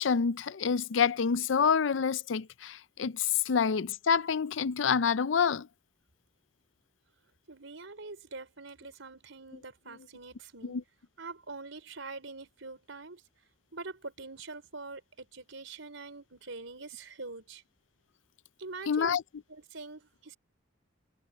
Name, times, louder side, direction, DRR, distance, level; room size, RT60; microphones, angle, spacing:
voice 1, 0.0-5.7 10.6-10.8 18.9-19.2, left 6 dB, 75° left, 0.5 m, -27 dB
voice 2, 7.5-10.8 11.2-13.2 13.7-17.6 18.6-19.2 19.5-20.4, right 3 dB, 90° right, 4.1 m, -44 dB
head